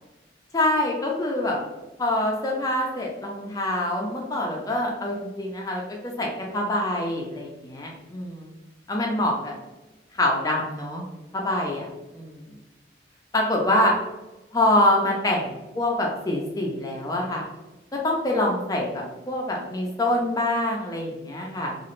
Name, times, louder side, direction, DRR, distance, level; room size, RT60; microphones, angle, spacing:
voice 1, 0.5-1.6 2.0-8.5 8.9-9.6 10.1-11.0 11.3-11.9 12.1-12.6 13.3-13.9 14.5-17.5 18.0-21.8, left 1 dB, 20° left, -1 dB, 0.4 m, -25 dB
2.9 x 2.4 x 3.0 m, 1.0 s
head